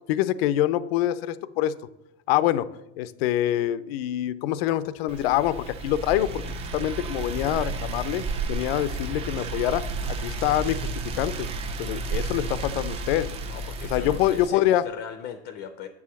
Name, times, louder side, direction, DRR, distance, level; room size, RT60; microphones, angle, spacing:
voice 1, 0.1-1.7 2.3-2.7 3.0-6.3 6.7-8.2 8.5-10.9 11.1-11.5 11.8-13.3 13.9-14.8, left 13 dB, 75° left, 15 dB, 0.6 m, -25 dB
sound 1, 5.1-14.5, right 3 dB, 20° right, 0.4 m, -32 dB
voice 2, 13.5-15.9, left 8 dB, 35° left, 8 dB, 0.5 m, -39 dB
8.3 x 4.8 x 7.0 m, 0.88 s
cardioid pair, 170°, 30 cm